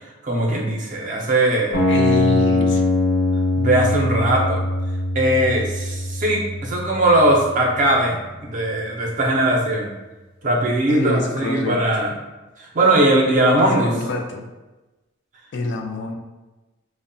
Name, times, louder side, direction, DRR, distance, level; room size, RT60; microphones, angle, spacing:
voice 1, 0.2-1.8 3.6-4.6 5.1-9.9 10.4-12.1 12.6-13.9, right 1 dB, 40° right, 0 dB, 0.4 m, -19 dB
sound 1, 1.7-7.7, left 2 dB, 75° left, 1.0 m, -22 dB
voice 2, 1.9-2.8 10.9-11.8 13.5-14.4 15.5-16.1, left 3 dB, 60° left, 3 dB, 0.3 m, -25 dB
2.7 x 2.0 x 2.6 m, 1.1 s
head